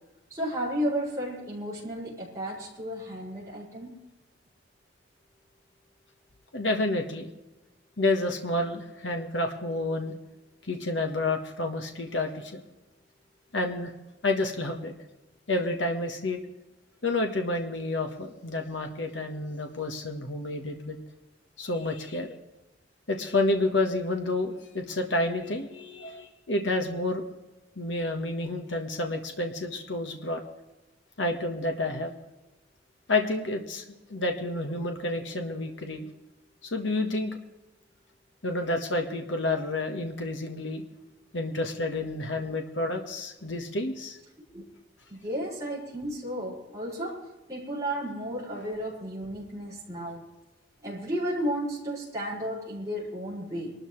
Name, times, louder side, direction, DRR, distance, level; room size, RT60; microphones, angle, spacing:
voice 1, 0.3-4.0 44.5-44.6 45.1-47.2 47.5-50.2 50.8-53.7, equal, 20° right, -8 dB, 5.9 m, -33 dB
voice 2, 6.5-7.3 8.0-10.1 10.7-12.6 13.5-13.9 14.2-14.9 15.5-16.4 17.0-21.0 21.6-22.3 23.1-27.3 27.8-30.4 31.2-32.1 33.1-33.8 34.1-36.1 36.6-37.4 38.4-40.8 41.3-44.2, left 2 dB, 75° left, 4 dB, 1.4 m, -29 dB
24.5 x 13.0 x 3.3 m, 1.0 s
head